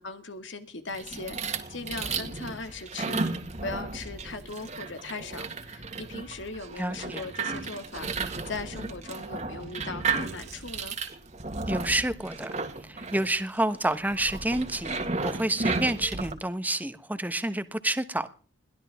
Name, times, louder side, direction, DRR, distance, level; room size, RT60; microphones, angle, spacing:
voice 1, 0.0-3.2 3.6-11.0, left 3 dB, 80° left, 2.2 m, -39 dB
sound 1, 0.9-16.3, right 4 dB, 40° right, 1.9 m, -34 dB
voice 2, 6.8-7.2 11.7-12.5 12.8-18.3, right 1 dB, 10° right, 1.2 m, -29 dB
22.0 x 15.5 x 3.6 m
head